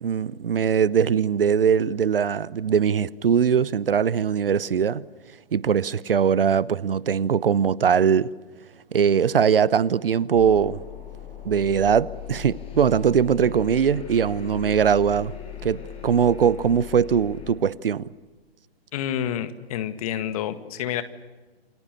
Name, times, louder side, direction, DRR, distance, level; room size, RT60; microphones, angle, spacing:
voice 1, 0.0-5.0 5.5-8.3 8.9-10.8 11.4-15.3 15.6-18.1, right 7 dB, 60° right, 1.0 m, -21 dB
sound 1, 10.3-17.5, left 10 dB, 20° left, 6.2 m, -39 dB
voice 2, 18.9-21.0, left 10 dB, 35° left, 1.9 m, -28 dB
28.5 x 26.5 x 6.8 m
figure-of-eight pair, 130°, 31 cm